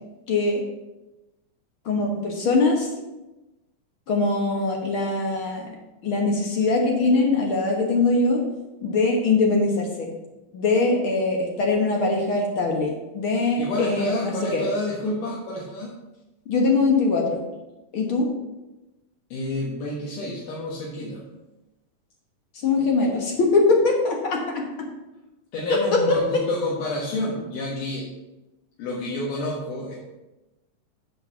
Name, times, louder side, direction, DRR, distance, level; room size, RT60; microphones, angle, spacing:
voice 1, 0.3-0.6 1.8-2.9 4.1-5.7 6.0-8.4 8.8-10.1 10.5-14.6 16.5-17.4 17.9-18.3 22.5-24.9 25.6-26.2, left 3 dB, 55° left, 0 dB, 1.6 m, -22 dB
voice 2, 13.6-15.9 19.3-21.2 25.5-28.1 28.8-30.0, left 1 dB, 80° left, -4 dB, 2.9 m, -29 dB
8.2 x 4.8 x 7.0 m, 1.0 s
omnidirectional pair, 3.7 m